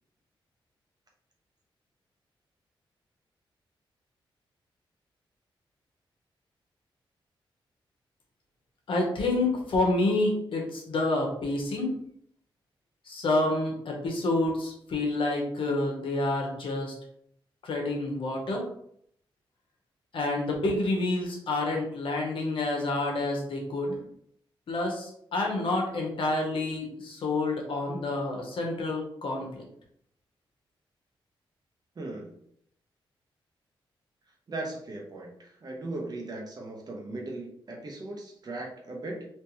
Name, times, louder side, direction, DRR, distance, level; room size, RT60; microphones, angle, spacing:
voice 1, 8.9-12.0 13.1-16.9 17.6-18.6 20.1-24.0 24.7-29.6, left 2 dB, 70° left, 0 dB, 1.1 m, -28 dB
voice 2, 32.0-32.3 34.5-39.3, right 2 dB, 45° right, 1 dB, 0.9 m, -38 dB
3.3 x 2.9 x 3.1 m, 0.68 s
cardioid pair, 90°, 9 cm